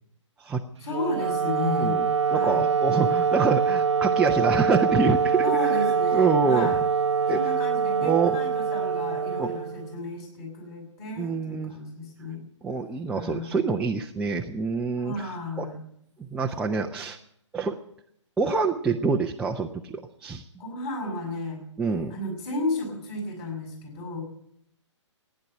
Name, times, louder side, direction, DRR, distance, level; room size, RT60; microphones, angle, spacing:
voice 1, 0.8-2.7 5.4-6.8 7.3-12.5 13.1-13.6 15.0-15.8 20.6-21.6 22.1-24.2, left 2 dB, 30° left, 3 dB, 6.2 m, -33 dB
Wind instrument woodwind instrument, 0.8-10.1, right 6 dB, 65° right, 0.7 m, -24 dB
voice 2, 1.7-6.7 7.3-7.4 8.0-8.4 9.4-9.5 11.2-11.7 12.6-15.3 15.6-15.7 16.2-17.2 17.5-17.8 18.4-20.4 21.8-22.1, right 4 dB, 5° right, 0 dB, 0.6 m, -26 dB
16.0 x 10.0 x 9.0 m, 0.72 s
figure-of-eight pair, 135°, 16 cm